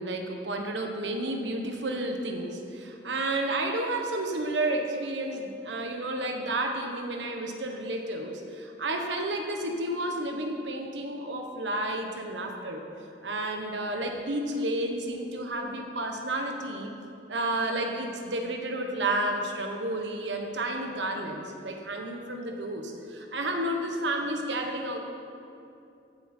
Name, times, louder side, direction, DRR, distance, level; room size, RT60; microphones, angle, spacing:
voice 1, 0.0-12.8 13.2-16.9 17.3-25.0, right 1 dB, 80° right, 3 dB, 1.3 m, -31 dB
15.0 x 8.3 x 4.5 m, 2.7 s
head